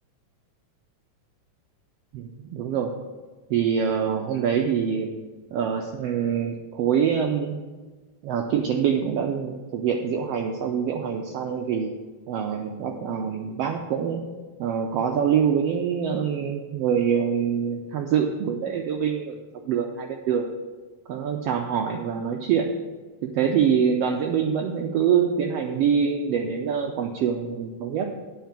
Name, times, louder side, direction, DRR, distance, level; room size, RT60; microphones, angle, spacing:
voice 1, 2.1-2.9 3.5-5.2 5.5-7.6 8.2-11.9 12.3-14.2 14.6-19.4 19.6-20.5 21.1-22.7 23.2-28.1, right 7 dB, 85° right, 3 dB, 1.3 m, -25 dB
9.2 x 4.7 x 7.4 m, 1.3 s
omnidirectional pair, 3.5 m